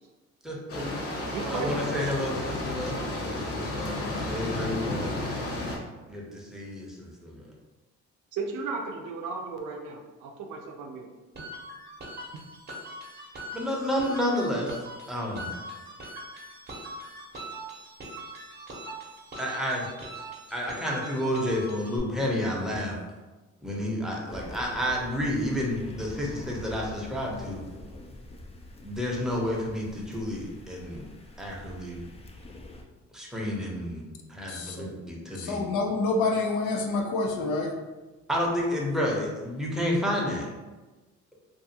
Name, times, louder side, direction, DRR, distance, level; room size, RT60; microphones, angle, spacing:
voice 1, 0.4-0.9 1.5-5.1 6.1-7.4 13.5-15.5 19.4-19.9 20.5-23.0 23.6-27.6 28.8-31.1 31.4-32.0 33.1-34.0 34.3-35.6 38.3-40.5, left 1 dB, ahead, -3 dB, 0.7 m, -30 dB
sound 1, 0.7-5.8, left 2 dB, 50° left, 0.8 m, -32 dB
voice 2, 1.3-1.8 8.3-11.1, right 4 dB, 80° right, 2 dB, 0.5 m, -35 dB
sound 2, 11.3-22.0, right 1 dB, 35° right, 0.8 m, -42 dB
sound 3, 24.3-32.8, left 1 dB, 20° left, 0.3 m, -46 dB
voice 3, 34.5-34.8 35.4-37.8, left 3 dB, 90° left, 2 dB, 0.5 m, -27 dB
2.6 x 2.3 x 2.7 m, 1.2 s
cardioid pair, 90°, 30 cm